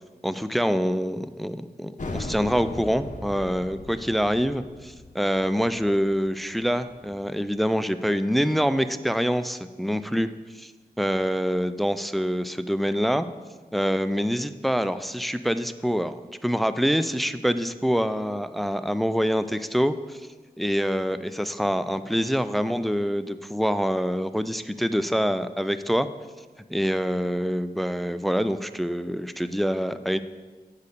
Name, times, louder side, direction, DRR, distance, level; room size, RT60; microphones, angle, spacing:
voice 1, 0.2-10.3 10.6-10.7 11.0-13.3 13.7-16.2 16.4-20.2 20.6-26.1 26.7-30.2, equal, ahead, 12 dB, 0.4 m, -25 dB
sound 1, 2.0-7.3, left 2 dB, 50° left, 1.0 m, -38 dB
8.3 x 4.2 x 6.6 m, 1.4 s
cardioid pair, 55°, 16 cm